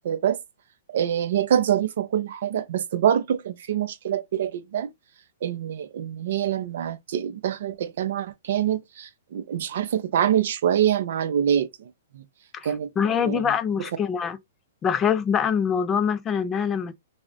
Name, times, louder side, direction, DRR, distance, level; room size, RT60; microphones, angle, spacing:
voice 1, 0.0-0.4 0.9-4.9 5.4-12.2 12.6-13.5, right 9 dB, 65° right, 0.4 m, -25 dB
voice 2, 12.5-14.4 14.8-16.9, left 7 dB, 20° left, 0.3 m, -24 dB
2.3 x 2.1 x 3.6 m
hypercardioid pair, 135°, 0 cm